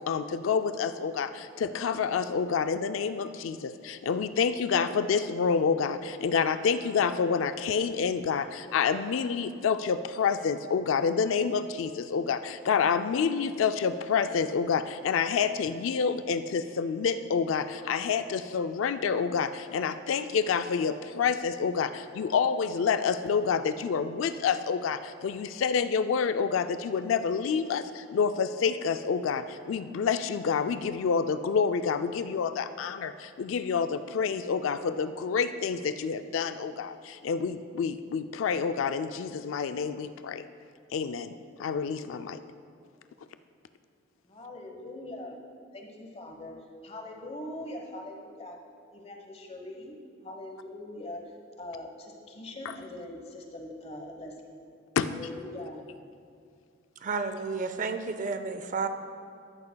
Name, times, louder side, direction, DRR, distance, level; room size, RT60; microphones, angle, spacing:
voice 1, 0.0-40.4 40.9-41.3 41.6-42.4 52.7-52.8 55.0-55.1, left 6 dB, 85° left, 10 dB, 0.4 m, -28 dB
voice 2, 44.3-45.4 45.7-46.5 46.8-48.6 48.9-49.9 50.2-51.2 51.6-54.6 55.1-55.8, left 1 dB, 30° left, 2 dB, 1.1 m, -42 dB
voice 3, 57.0-58.9, right 4 dB, 40° right, 9 dB, 0.5 m, -31 dB
13.5 x 10.5 x 2.3 m, 2.4 s
head